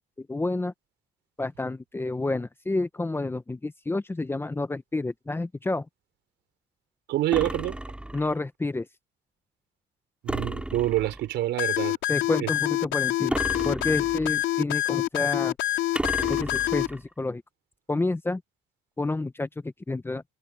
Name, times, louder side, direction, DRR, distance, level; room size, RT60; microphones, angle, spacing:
voice 1, 0.2-0.7 1.4-5.9 8.1-8.9 12.1-13.4 13.6-15.6 16.3-17.4 17.9-18.4 19.0-20.2, left 2 dB, 10° left, 1.0 m, -29 dB
voice 2, 7.1-7.8 10.2-12.0 12.4-12.5, right 14 dB, 70° right, 4.6 m, -26 dB
sound 1, 7.3-8.4 10.3-11.3 13.3-14.4 15.9-17.0, right 1 dB, 5° right, 3.8 m, -33 dB
sound 2, 11.6-16.9, left 14 dB, 80° left, 4.1 m, -26 dB
cardioid pair, 125°, 19 cm